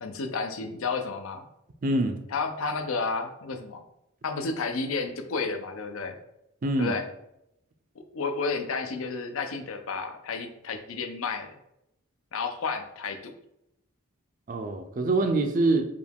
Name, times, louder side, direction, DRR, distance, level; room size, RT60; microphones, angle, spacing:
voice 1, 0.0-1.4 2.3-3.8 4.2-6.2 6.8-7.0 8.1-11.5 12.3-13.3, left 4 dB, 70° left, 6 dB, 0.5 m, -31 dB
voice 2, 1.8-2.2 6.6-7.0 14.5-15.8, right 2 dB, 35° right, 5 dB, 0.3 m, -25 dB
4.9 x 2.3 x 3.4 m, 0.82 s
head